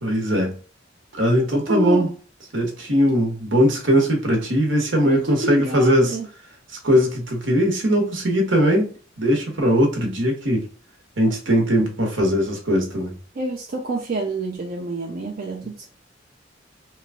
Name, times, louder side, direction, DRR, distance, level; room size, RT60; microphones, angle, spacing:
voice 1, 0.0-0.6 1.2-2.1 2.5-6.2 6.8-8.9 9.2-10.6 11.2-13.1, equal, 75° right, 1.1 m, -20 dB
voice 2, 1.5-2.1 5.1-6.3 13.4-15.9, right 1 dB, 50° right, 0.5 m, -27 dB
3.1 x 2.3 x 3.5 m
head